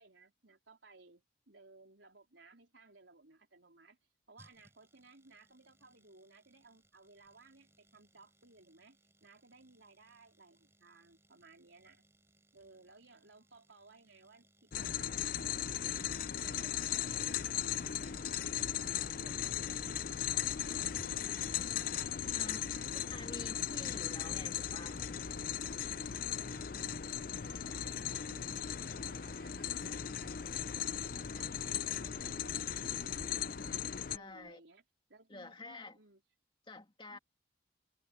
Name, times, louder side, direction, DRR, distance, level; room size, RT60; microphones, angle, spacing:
voice 1, 0.0-4.0 4.3-12.0 12.5-15.6 16.4-17.6 17.9-19.5 20.6-23.5 23.7-23.9 26.0-30.7 31.2-33.8 34.1-34.8 35.1-36.2 37.1-37.2, right 3 dB, 85° right, 4.0 m, -60 dB
sound 1, 4.4-20.9 21.1-21.2, right 1 dB, 15° right, 5.1 m, -69 dB
sound 2, 14.7-34.2, left 9 dB, 50° left, 0.6 m, -37 dB
Livestock farm animals working animals, 16.8-34.5, equal, 55° right, 4.4 m, -65 dB
voice 2, 22.3-22.7 23.1-25.0 34.1-34.6 35.3-36.0 36.7-37.2, left 2 dB, 30° left, 2.6 m, -49 dB
head